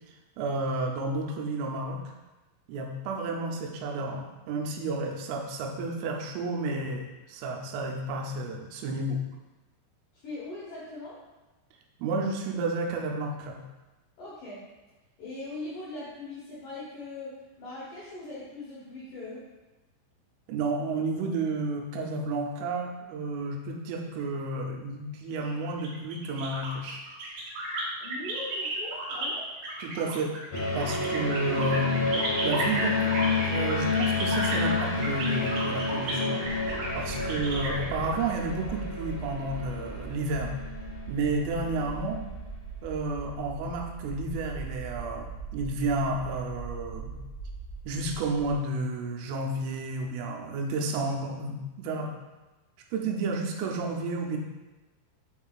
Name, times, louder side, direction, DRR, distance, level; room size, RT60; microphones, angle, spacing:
voice 1, 0.4-2.0 2.7-9.2 12.0-13.6 20.5-27.0 29.8-30.4 30.8-32.0 32.4-36.4 36.9-40.6 41.1-42.2 42.8-45.3 45.5-47.2 47.8-52.1 52.9-54.4, right 2 dB, 85° right, 1 dB, 3.3 m, -31 dB
voice 2, 10.1-11.2 14.2-14.6 15.2-19.4 28.0-29.5 36.8-37.2, left 2 dB, 75° left, -8 dB, 1.9 m, -40 dB
sound 1, 25.3-29.3 29.6-38.2, right 2 dB, 65° right, 3.3 m, -33 dB
sound 2, 30.5-41.9, left 3 dB, 60° left, 1.8 m, -30 dB
sound 3, 36.4-48.5, right 4 dB, 45° right, 1.9 m, -41 dB
9.1 x 4.5 x 2.4 m, 1.1 s
omnidirectional pair, 5.6 m